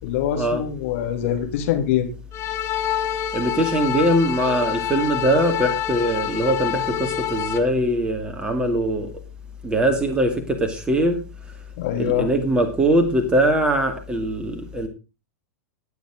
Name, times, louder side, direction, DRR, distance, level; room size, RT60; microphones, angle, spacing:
voice 1, 0.0-2.1 11.8-12.3, left 10 dB, 55° left, 5 dB, 3.1 m, -24 dB
sound 1, 2.3-7.6, left 11 dB, 30° left, 2.3 m, -27 dB
voice 2, 3.3-9.1 9.6-11.2 11.9-14.9, right 1 dB, 10° right, 5 dB, 2.4 m, -21 dB
20.0 x 7.2 x 3.7 m, 0.29 s
figure-of-eight pair, 95°, 8 cm